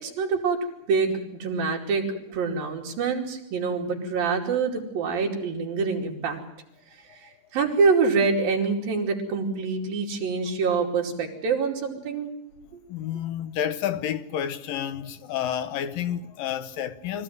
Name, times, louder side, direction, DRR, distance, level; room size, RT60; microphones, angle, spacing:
voice 1, 0.0-6.4 7.1-12.3, right 4 dB, 80° right, 4.5 m, -26 dB
voice 2, 12.9-17.2, left 10 dB, 75° left, 2.7 m, -30 dB
24.5 x 15.0 x 9.4 m
omnidirectional pair, 4.1 m